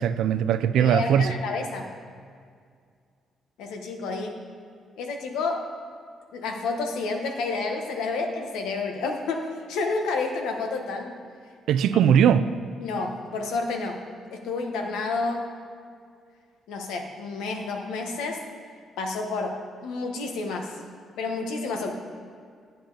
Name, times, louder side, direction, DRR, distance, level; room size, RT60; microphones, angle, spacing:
voice 1, 0.0-1.3 11.7-12.5, right 8 dB, 80° right, 12 dB, 0.4 m, -20 dB
voice 2, 0.8-1.9 3.6-4.4 5.0-5.7 6.3-11.1 12.8-14.0 14.3-15.5 16.7-18.4 19.0-20.8 21.2-21.9, left 3 dB, 90° left, 4 dB, 1.1 m, -30 dB
10.5 x 8.8 x 3.9 m, 2.1 s
cardioid pair, 90°, 0 cm